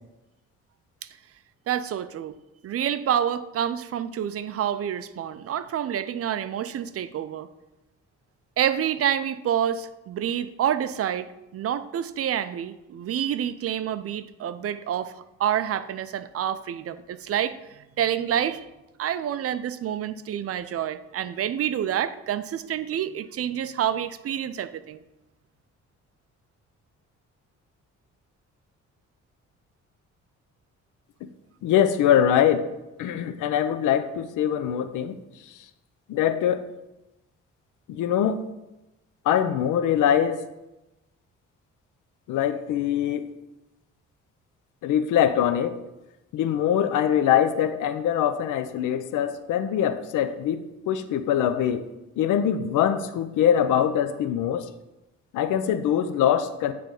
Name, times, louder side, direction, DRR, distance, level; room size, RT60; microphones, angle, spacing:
voice 1, 1.7-2.4 2.6-7.5 8.6-15.1 15.4-18.7 19.0-25.0, right 10 dB, 50° right, 14 dB, 0.5 m, -28 dB
voice 2, 31.6-32.6 33.0-35.2 36.1-36.7 37.9-38.4 39.3-40.4 42.3-43.3 44.8-45.7 46.3-51.8 52.2-54.7 55.3-56.7, left 9 dB, 85° left, 11 dB, 0.6 m, -23 dB
8.9 x 3.4 x 5.3 m, 0.96 s
cardioid pair, 90°, 30 cm